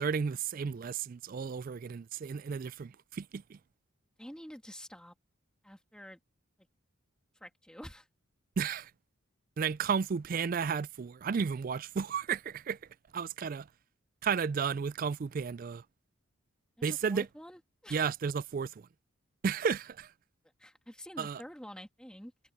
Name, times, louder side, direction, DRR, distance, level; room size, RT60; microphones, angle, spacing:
voice 1, 0.0-3.4 8.6-8.9 9.6-12.8 13.1-13.7 14.2-15.8 16.8-17.3 17.9-18.7 19.4-20.1 21.2-21.4, right 6 dB, 40° right, 0.3 m, -33 dB
voice 2, 4.2-5.1 5.6-6.2 7.4-8.1 16.8-18.1 20.6-22.3, equal, 5° left, 2.0 m, -48 dB
head